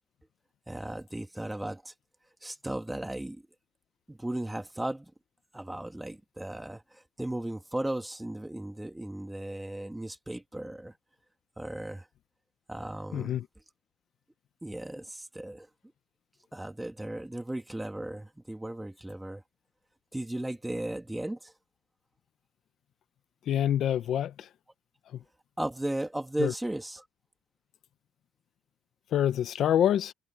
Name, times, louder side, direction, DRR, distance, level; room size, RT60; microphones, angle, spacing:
voice 1, 0.7-1.9 2.4-3.4 4.1-5.1 5.5-10.9 11.6-12.1 12.7-13.4 14.6-15.7 16.5-19.4 20.1-21.5 25.6-27.0, right 1 dB, 5° right, 2.1 m, -36 dB
voice 2, 13.1-13.5 23.5-24.5 25.1-25.2 26.4-26.5 29.1-30.1, left 10 dB, 50° left, 0.6 m, -26 dB
cardioid pair, 165°, 0 cm